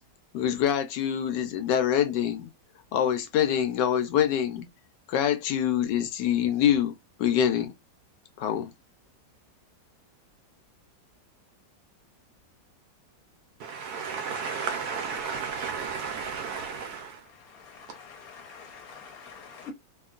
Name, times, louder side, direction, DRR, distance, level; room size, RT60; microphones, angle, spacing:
voice 1, 0.3-2.5 2.9-4.7 5.1-6.9 7.2-7.7 8.4-8.7, left 9 dB, 80° left, 1.2 m, -25 dB
voice 2, 13.6-17.2, right 6 dB, 70° right, 0.9 m, -33 dB
voice 3, 17.9-19.7, left 6 dB, 60° left, 1.1 m, -45 dB
2.9 x 2.5 x 2.3 m
omnidirectional pair, 2.0 m